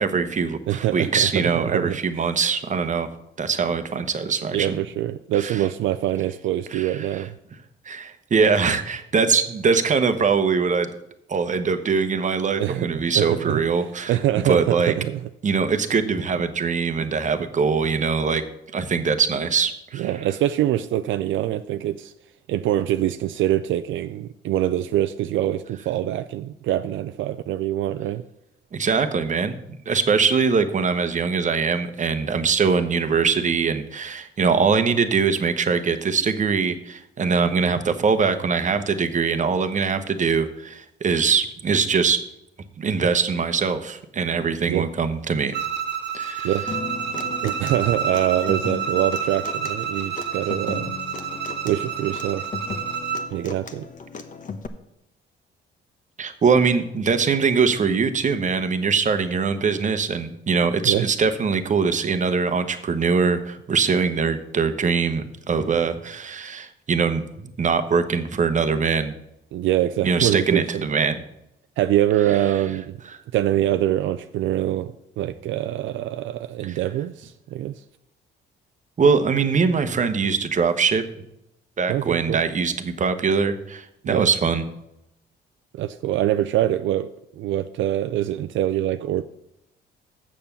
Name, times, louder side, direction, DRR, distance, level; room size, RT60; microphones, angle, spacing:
voice 1, 0.0-3.1 3.4-4.8 5.4-5.6 6.7-7.3 7.9-10.9 11.3-14.2 14.4-14.9 15.4-18.4 18.7-20.1 28.7-29.6 29.9-42.2 42.8-45.6 46.1-46.5 47.1-47.2 56.2-69.1 70.0-71.2 76.6-76.8 79.0-81.0 81.8-84.6, right 5 dB, 40° right, 9 dB, 1.0 m, -22 dB
voice 2, 0.7-2.3 4.5-7.3 12.6-13.6 14.1-15.3 19.9-22.1 22.5-28.2 44.7-44.9 46.4-46.6 47.4-50.9 51.6-52.4 53.3-53.9 60.8-61.0 69.5-70.7 71.8-73.0 73.3-77.8 81.9-82.4 84.0-84.3 85.8-87.1 87.4-89.2, right 12 dB, 75° right, 10 dB, 0.4 m, -24 dB
Bowed string instrument, 45.5-53.3, right 7 dB, 60° right, 1.3 m, -29 dB
Human voice / Acoustic guitar, 46.7-54.7, left 5 dB, 40° left, 1.0 m, -36 dB
7.4 x 6.9 x 6.9 m, 0.83 s
cardioid pair, 90°, 20 cm